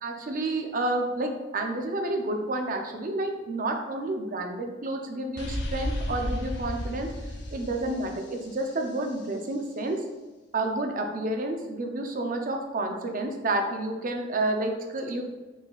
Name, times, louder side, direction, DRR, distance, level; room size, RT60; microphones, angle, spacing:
voice 1, 0.0-7.1 7.5-10.0 10.5-15.2, right 2 dB, 45° right, 3 dB, 0.6 m, -30 dB
sound 1, 5.4-9.1, left 1 dB, 65° left, 0.7 m, -33 dB
4.9 x 4.0 x 2.4 m, 1.2 s
head